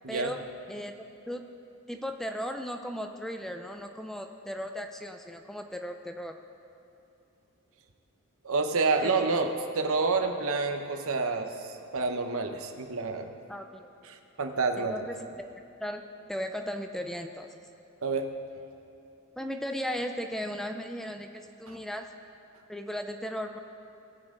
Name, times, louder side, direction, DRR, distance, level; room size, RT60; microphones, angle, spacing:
voice 1, 0.1-0.4 0.7-0.9 1.3-1.4 1.9-6.4 9.0-9.1 13.5-13.9 14.8-15.5 15.8-16.0 16.3-17.5 19.4-22.1 22.7-23.6, equal, ahead, 5 dB, 0.4 m, -36 dB
voice 2, 8.4-9.5 9.7-13.3 14.0-14.9 18.0-18.3 21.7-21.8, right 4 dB, 65° right, 6 dB, 0.9 m, -28 dB
20.0 x 7.4 x 3.8 m, 2.9 s
head